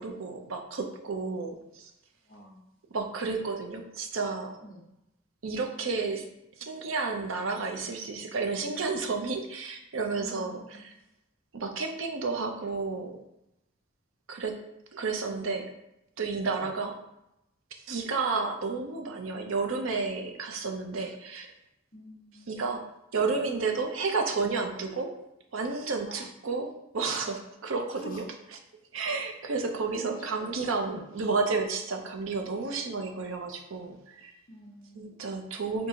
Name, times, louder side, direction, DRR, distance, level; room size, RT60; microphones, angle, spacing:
voice 1, 0.0-1.8 2.9-4.6 5.4-6.2 6.6-10.9 11.5-13.2 14.3-14.5 14.9-15.7 16.2-16.9 17.9-21.5 22.5-22.8 23.1-25.1 25.5-28.2 28.9-34.3 34.9-35.9, right 4 dB, 75° right, 4 dB, 0.6 m, -31 dB
voice 2, 2.3-2.6 4.6-4.8 10.1-10.8 16.5-16.7 21.9-22.5 26.1-26.2 27.9-28.2 29.1-29.2 30.0-30.3 30.8-31.0 34.5-35.2, equal, 40° left, -1 dB, 0.8 m, -46 dB
4.4 x 2.6 x 3.7 m, 0.85 s
head